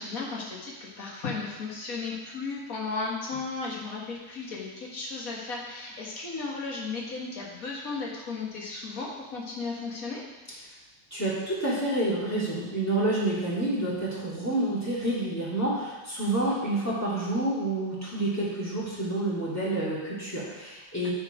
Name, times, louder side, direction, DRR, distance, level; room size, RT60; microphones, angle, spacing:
voice 1, 0.0-10.2 10.5-10.6 21.0-21.1, left 4 dB, 45° left, -3 dB, 1.9 m, -35 dB
voice 2, 11.1-21.1, right 1 dB, 10° left, -8 dB, 2.2 m, -28 dB
9.7 x 4.4 x 4.9 m, 1.2 s
omnidirectional pair, 2.2 m